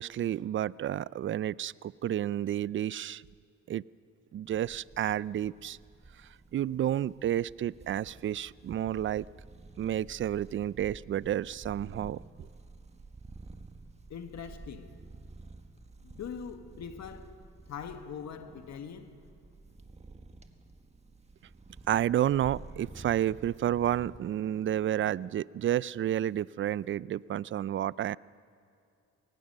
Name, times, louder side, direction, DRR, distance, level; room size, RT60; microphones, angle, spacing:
voice 1, 0.0-3.2 3.7-3.8 4.3-5.8 6.5-9.2 9.8-12.2 21.9-28.2, right 11 dB, 40° right, 0.4 m, -30 dB
sound 1, 4.5-24.2, right 3 dB, 20° right, 1.6 m, -51 dB
voice 2, 14.1-15.0 16.0-17.3 17.7-19.1, left 7 dB, 65° left, 1.6 m, -42 dB
23.0 x 19.5 x 6.7 m
cardioid pair, 90°, 30 cm